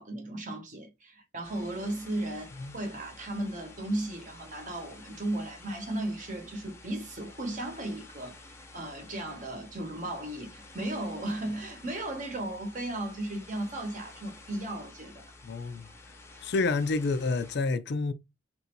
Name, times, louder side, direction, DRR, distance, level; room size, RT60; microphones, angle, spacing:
voice 1, 0.0-8.4 8.7-15.3, right 1 dB, 40° right, 1.0 m, -35 dB
sound 1, 1.4-17.6, left 2 dB, 15° left, 0.7 m, -51 dB
voice 2, 15.4-15.9 16.4-18.1, left 3 dB, 55° left, 0.4 m, -28 dB
3.0 x 2.6 x 4.4 m
head